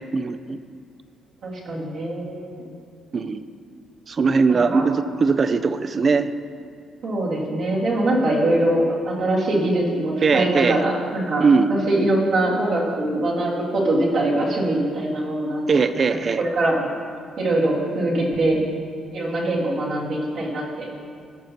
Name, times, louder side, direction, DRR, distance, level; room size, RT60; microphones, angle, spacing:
voice 1, 0.1-0.6 3.1-3.4 4.1-6.3 10.2-10.8 11.4-11.7 15.7-16.4, right 4 dB, 40° right, 12 dB, 0.4 m, -20 dB
voice 2, 1.4-2.6 4.7-4.8 7.0-15.8 16.4-16.9 17.4-18.6 19.1-20.9, right 1 dB, 70° right, -6 dB, 2.1 m, -23 dB
15.0 x 5.6 x 3.0 m, 2.3 s
cardioid pair, 90°, 0 cm